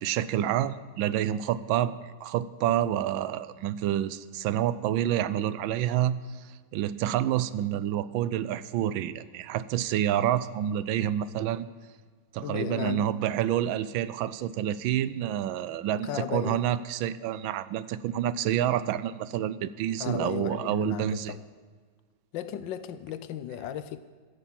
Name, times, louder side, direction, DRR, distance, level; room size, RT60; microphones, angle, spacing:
voice 1, 0.0-1.9 2.2-11.7 12.3-21.3, right 11 dB, 80° right, 1.3 m, -28 dB
voice 2, 12.4-13.1 16.0-16.7 20.0-21.4 22.3-24.0, left 9 dB, 70° left, 1.3 m, -35 dB
14.5 x 10.0 x 7.4 m
omnidirectional pair, 2.2 m